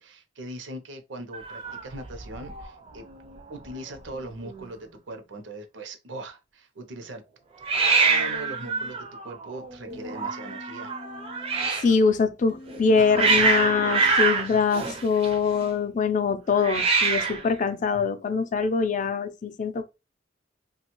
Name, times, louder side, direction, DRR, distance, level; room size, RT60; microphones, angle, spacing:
voice 1, 0.0-3.1 3.5-7.2 7.8-10.9, right 1 dB, 80° right, 0.7 m, -40 dB
Hiss, 1.3-2.7 2.9-3.4 3.7-3.8 3.9-4.6 7.6-11.9 12.7-15.6 16.6-17.5, right 4 dB, 30° right, 0.4 m, -26 dB
Human voice, 8.1-8.9 9.9-11.7 12.5-14.1, left 2 dB, 85° left, 0.6 m, -44 dB
voice 2, 11.8-19.8, left 5 dB, 45° left, 0.4 m, -23 dB
2.8 x 2.3 x 3.0 m
head